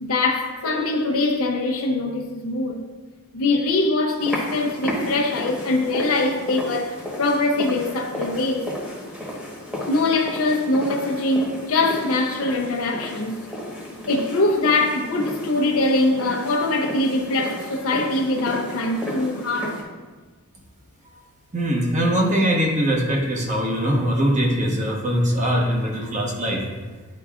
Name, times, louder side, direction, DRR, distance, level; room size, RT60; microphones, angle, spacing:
voice 1, 0.0-2.8 3.3-8.7 9.9-13.4 14.1-19.8, left 2 dB, 70° left, 0.7 m, -22 dB
sound 1, 4.2-19.8, left 1 dB, 5° right, 1.2 m, -33 dB
voice 2, 21.5-26.7, equal, 35° right, 1.1 m, -22 dB
10.5 x 4.5 x 2.4 m
head